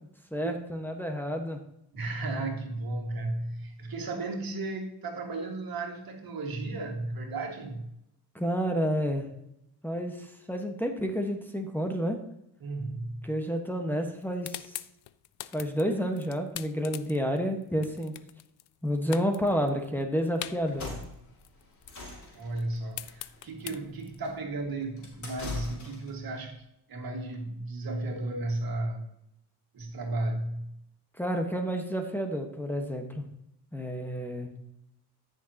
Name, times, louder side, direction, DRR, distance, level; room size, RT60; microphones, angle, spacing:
voice 1, 0.3-1.6 8.3-9.3 9.8-12.2 13.2-14.8 15.5-18.1 18.8-21.0 31.2-33.2 33.7-34.5, equal, 5° left, 2 dB, 1.4 m, -30 dB
voice 2, 1.9-7.9 12.6-13.3 22.3-26.6 26.9-29.0 29.7-30.8, right 2 dB, 60° right, 2 dB, 2.2 m, -34 dB
sound 1, 14.1-18.8 19.1-21.2 21.4-24.4, left 14 dB, 75° left, 0.6 m, -42 dB
sound 2, 20.6-26.2, left 3 dB, 45° left, 4.1 m, -42 dB
14.0 x 6.5 x 2.9 m, 0.79 s
cardioid pair, 75°, 39 cm